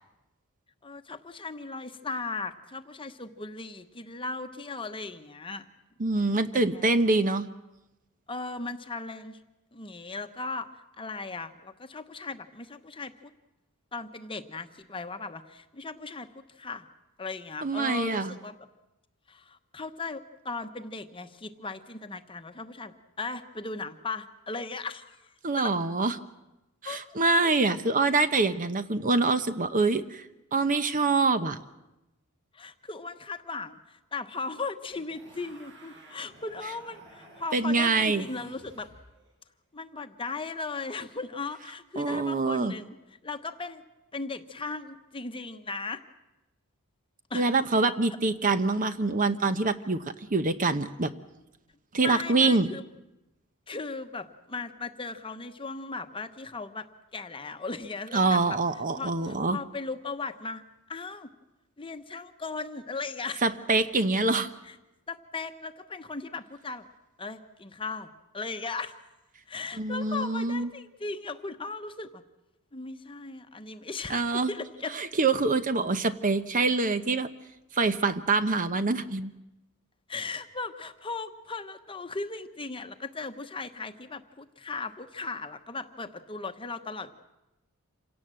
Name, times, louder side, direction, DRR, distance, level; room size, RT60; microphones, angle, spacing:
voice 1, 0.8-5.6 6.5-6.9 8.3-9.4 9.7-10.7 11.0-13.3 13.9-16.9 17.2-18.5 19.3-25.7 26.8-27.0 27.4-28.0 32.5-38.9 39.7-43.0 43.2-43.8 44.1-46.0 47.3-47.5 52.0-52.8 53.7-58.6 59.0-60.6 60.9-61.3 61.8-63.4 64.6-64.8 65.1-66.8 67.2-68.1 68.3-69.0 69.5-72.2 72.7-75.0 80.1-87.1, left 3 dB, 25° left, 8 dB, 1.0 m, -37 dB
voice 2, 6.0-7.5 17.6-18.3 25.4-26.1 26.8-31.6 37.5-38.3 42.0-42.7 47.3-50.0 50.3-51.1 51.9-52.7 58.1-59.6 63.4-64.5 69.8-70.7 74.1-74.5 74.9-77.3 77.7-79.3, right 3 dB, 35° right, 11 dB, 0.8 m, -25 dB
sound 1, 34.9-39.3 41.5-41.8, right 1 dB, 60° right, 5.6 m, -54 dB
27.0 x 17.5 x 7.7 m, 0.97 s
head